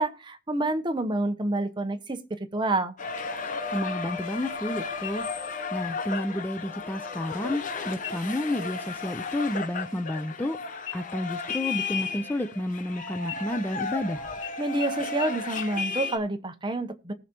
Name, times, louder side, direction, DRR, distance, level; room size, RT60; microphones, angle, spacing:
voice 1, 0.0-2.9 14.6-17.1, right 2 dB, 25° right, 0.8 m, -28 dB
sound 1, 3.0-16.2, left 4 dB, 40° left, 0.9 m, -34 dB
voice 2, 3.7-5.3 5.7-10.6 10.9-14.2, left 1 dB, 10° left, 0.5 m, -31 dB
sound 2, 5.0-5.7 6.1-6.2 6.7-7.3 7.9-8.5 8.9-9.1 9.4-10.5 10.9-12.9 13.2-14.0 14.4-14.5 14.8-14.9 15.2-15.3 15.6-15.7, left 11 dB, 75° left, 1.4 m, -42 dB
19.0 x 6.4 x 2.9 m
head